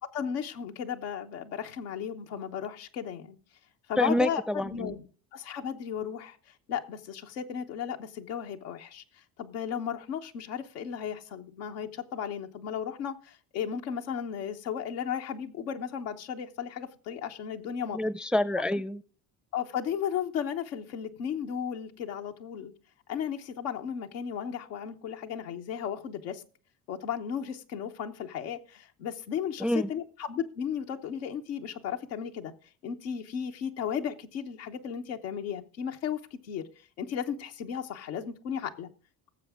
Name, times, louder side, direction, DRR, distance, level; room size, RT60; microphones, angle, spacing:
voice 1, 0.1-3.4 3.9-5.1 5.3-6.4 6.7-9.0 9.4-18.0 19.5-22.7 23.1-26.4 26.9-32.5 32.8-36.7 37.0-38.9, left 8 dB, 90° left, 1.1 m, -35 dB
voice 2, 4.0-4.9 17.9-19.0 29.6-29.9, left 1 dB, ahead, 0.4 m, -27 dB
18.0 x 7.2 x 3.6 m
hypercardioid pair, 65°, 50 cm